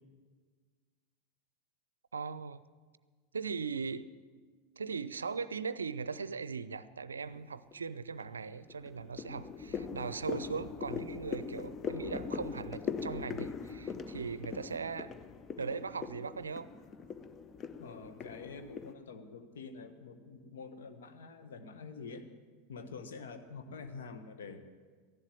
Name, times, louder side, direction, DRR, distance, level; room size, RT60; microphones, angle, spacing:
voice 1, 2.1-2.6 3.3-4.1 4.8-15.1 15.6-16.7, right 5 dB, 80° right, 16 dB, 0.5 m, -39 dB
sound 1, 7.2-7.7 8.2-18.9, left 6 dB, 30° left, 0.7 m, -41 dB
voice 2, 17.8-22.2 22.7-24.6, left 4 dB, 70° left, 7 dB, 1.3 m, -47 dB
14.5 x 11.5 x 7.7 m, 1.5 s
figure-of-eight pair, 85°, 0 cm